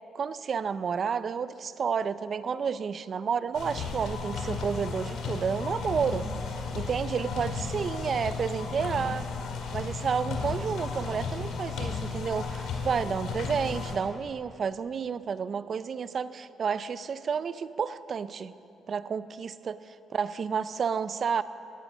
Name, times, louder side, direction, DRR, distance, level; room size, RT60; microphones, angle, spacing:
voice 1, 0.1-9.3 9.7-18.5 18.9-21.4, right 6 dB, 50° right, 15 dB, 0.5 m, -31 dB
sound 1, 3.5-14.0, left 4 dB, 80° left, 2.2 m, -34 dB
16.5 x 13.0 x 6.1 m, 2.8 s
cardioid pair, 90°, 0 cm